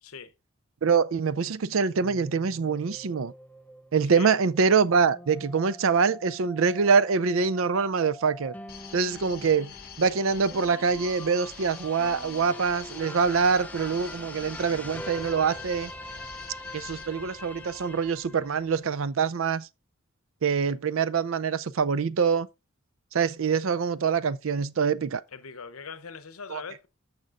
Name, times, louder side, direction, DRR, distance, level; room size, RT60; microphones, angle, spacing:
voice 1, 0.0-0.3 4.1-4.3 25.3-26.9, left 5 dB, 85° left, 0.8 m, -41 dB
voice 2, 0.8-3.3 3.9-8.5 8.9-9.7 10.0-15.9 16.7-19.7 20.4-22.5 23.1-25.2 26.5-26.6, right 5 dB, 65° right, 0.5 m, -25 dB
sound 1, 2.0-19.1, left 1 dB, 5° left, 0.5 m, -44 dB
sound 2, 8.7-18.0, left 7 dB, 45° left, 1.6 m, -46 dB
14.0 x 5.3 x 2.5 m
head